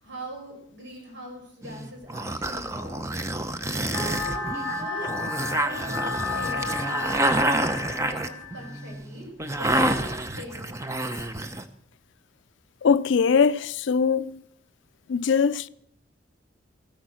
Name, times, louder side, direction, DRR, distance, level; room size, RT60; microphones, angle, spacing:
voice 1, 0.0-2.9 3.8-7.4 7.9-9.3 9.5-10.7, right 1 dB, 70° right, 5.4 m, -41 dB
sound 1, 1.6-11.6, right 1 dB, 15° right, 0.6 m, -28 dB
sound 2, 3.9-8.9, left 3 dB, 5° left, 1.6 m, -32 dB
voice 2, 12.8-14.4 15.1-15.7, left 6 dB, 75° left, 0.4 m, -21 dB
14.5 x 8.4 x 6.2 m
head